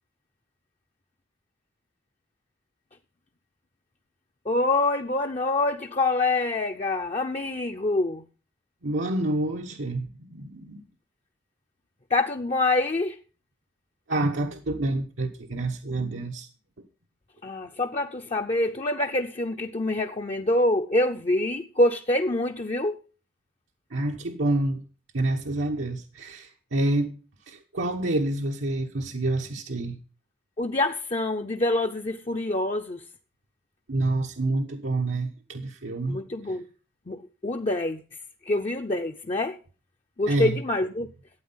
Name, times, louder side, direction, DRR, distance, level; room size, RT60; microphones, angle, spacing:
voice 1, 4.5-8.2 12.1-13.2 17.4-23.0 30.6-33.0 36.1-36.6 37.1-38.0 38.4-39.6 40.2-41.1, left 2 dB, 35° left, 0.6 m, -26 dB
voice 2, 8.8-10.8 14.1-16.5 23.9-24.8 25.1-27.1 27.5-30.0 33.9-36.2 36.5-36.6 40.3-40.6, right 2 dB, 85° right, 1.2 m, -28 dB
13.0 x 8.9 x 5.5 m
head